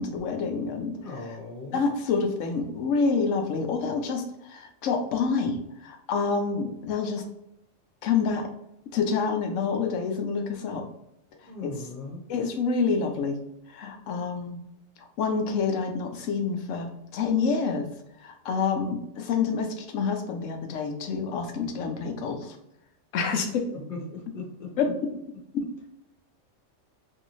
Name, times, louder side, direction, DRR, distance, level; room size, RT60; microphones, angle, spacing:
voice 1, 0.0-1.4 1.7-7.2 8.0-8.5 8.9-10.8 11.6-11.7 12.3-13.4 13.7-14.6 15.2-17.9 18.2-22.6 23.1-23.7 24.8-25.1 25.5-25.6, left 5 dB, 85° left, 5 dB, 1.0 m, -27 dB
voice 2, 1.0-1.8 11.4-12.2 23.7-24.9, left 3 dB, 50° left, -1 dB, 1.0 m, -38 dB
3.2 x 2.7 x 3.0 m, 0.80 s
omnidirectional pair, 1.3 m